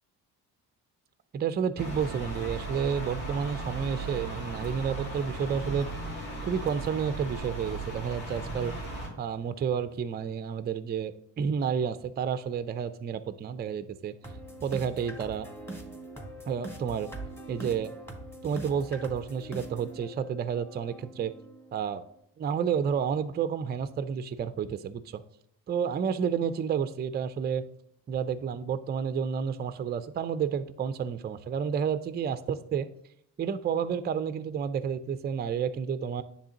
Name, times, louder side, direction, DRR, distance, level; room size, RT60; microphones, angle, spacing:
voice 1, 1.3-5.9 6.4-8.7 9.2-14.1 14.6-15.5 16.5-17.1 17.5-17.9 18.4-21.3 21.7-22.0 22.4-25.2 25.7-27.6 28.1-32.9 33.4-36.2, right 7 dB, 20° right, 12 dB, 0.4 m, -30 dB
sound 1, 1.8-9.1, right 2 dB, 80° left, 2.3 m, -37 dB
sound 2, 14.2-22.2, right 1 dB, 5° left, 1.5 m, -43 dB
9.8 x 3.4 x 2.9 m, 0.73 s
hypercardioid pair, 50°, 47 cm